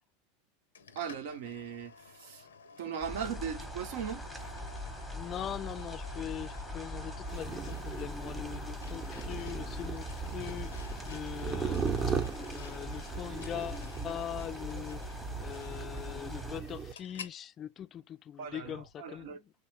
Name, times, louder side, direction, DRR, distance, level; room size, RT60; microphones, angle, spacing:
sound 1, 0.7-17.4, left 6 dB, 85° left, 0.5 m, -52 dB
voice 1, 1.0-1.9 2.2-2.4 2.8-4.2 18.4-19.4, right 7 dB, 65° right, 0.7 m, -38 dB
sound 2, 3.0-16.6, equal, ahead, 0.9 m, -41 dB
voice 2, 5.1-12.2 12.5-15.0 15.4-19.5, left 10 dB, 35° left, 0.3 m, -42 dB
sound 3, 7.3-16.9, right 5 dB, 30° right, 0.8 m, -38 dB
3.2 x 2.3 x 3.1 m
hypercardioid pair, 95°, 0 cm